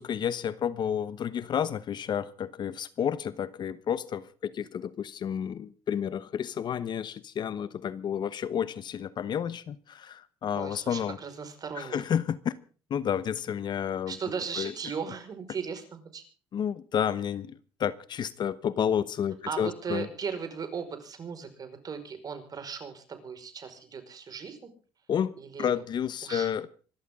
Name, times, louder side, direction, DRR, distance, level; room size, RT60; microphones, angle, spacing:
voice 1, 0.0-11.2 11.8-12.5 12.9-14.2 14.6-14.7 16.5-20.1 25.1-25.3 25.6-26.7, left 8 dB, 55° left, 1.1 m, -31 dB
voice 2, 10.6-12.0 14.1-16.2 19.5-24.7 25.4-25.7 26.2-26.5, right 6 dB, 45° right, 5.2 m, -37 dB
25.5 x 13.0 x 3.7 m
cardioid pair, 100°, 9 cm